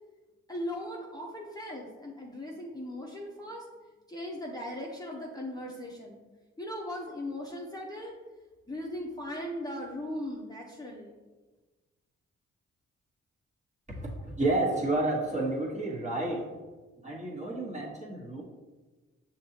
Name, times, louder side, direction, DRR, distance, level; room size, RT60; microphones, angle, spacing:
voice 1, 0.5-3.6 4.1-6.2 6.6-8.1 8.7-11.1, left 1 dB, 15° left, -3 dB, 0.7 m, -38 dB
voice 2, 13.9-16.6 17.0-18.4, right 2 dB, 25° right, -3 dB, 1.3 m, -30 dB
5.9 x 2.9 x 2.8 m, 1.2 s
supercardioid pair, 50°, 30 cm